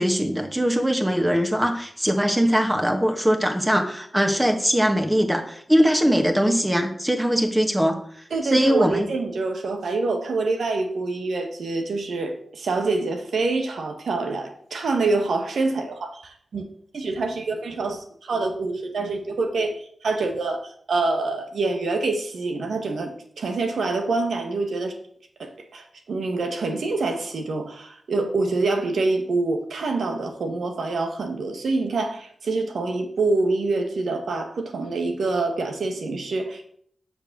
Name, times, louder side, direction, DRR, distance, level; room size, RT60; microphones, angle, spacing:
voice 1, 0.0-8.0 8.5-9.1, equal, 10° right, 3 dB, 1.8 m, -21 dB
voice 2, 8.3-16.6 16.9-20.6 20.9-23.1 23.4-24.9 25.4-36.6, right 3 dB, 80° right, 5 dB, 1.5 m, -26 dB
7.1 x 5.4 x 6.7 m, 0.63 s
cardioid pair, 45°, 0 cm